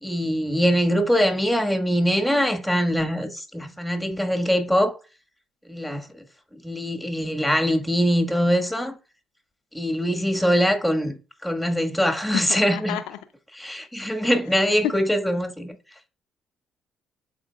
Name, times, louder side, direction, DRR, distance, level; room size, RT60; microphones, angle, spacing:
voice 1, 0.0-5.0 5.7-6.1 6.6-8.9 9.7-11.1 11.4-13.0 13.5-15.7, equal, ahead, 1.6 m, -23 dB
voice 2, 12.3-13.0 14.8-14.9, left 12 dB, 85° left, 0.4 m, -28 dB
11.5 x 4.3 x 2.3 m
supercardioid pair, 65°, 0 cm